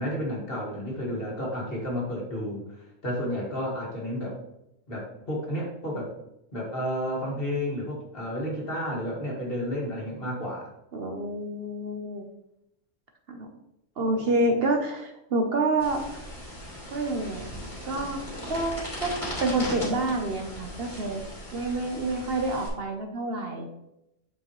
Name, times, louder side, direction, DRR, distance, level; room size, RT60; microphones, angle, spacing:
voice 1, 0.0-2.6 3.0-4.4 4.9-6.1 6.5-10.7, equal, 45° left, -3 dB, 2.0 m, -31 dB
voice 2, 10.9-12.2 13.3-13.5 14.0-16.2 16.9-17.5 17.8-18.2 18.5-21.2 21.5-23.7, right 2 dB, 55° right, 3 dB, 0.9 m, -28 dB
sound 1, 15.8-22.7, left 1 dB, 25° left, 2.4 m, -38 dB
8.0 x 4.8 x 3.0 m, 0.84 s
omnidirectional pair, 1.4 m